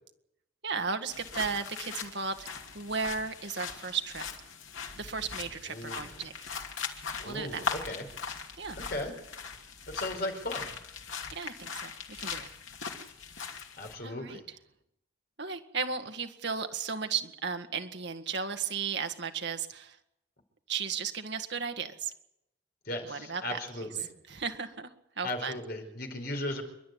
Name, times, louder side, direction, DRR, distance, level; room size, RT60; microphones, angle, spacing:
voice 1, 0.6-2.5 2.7-4.3 5.0-6.3 7.2-7.8 8.6-8.8 11.3-12.5 13.4-13.6 14.0-14.4 15.4-20.0 20.7-22.1 23.1-23.6 24.3-24.9 25.2-25.6, right 5 dB, 60° right, 6 dB, 1.9 m, -35 dB
sound 1, 1.1-14.0, left 5 dB, 85° left, 2.7 m, -40 dB
voice 2, 5.6-6.2 7.2-8.0 8.8-9.1 9.9-10.7 13.8-14.4 22.8-24.1 25.2-26.6, left 1 dB, 50° left, 4 dB, 5.0 m, -37 dB
28.5 x 12.0 x 9.5 m, 0.83 s
head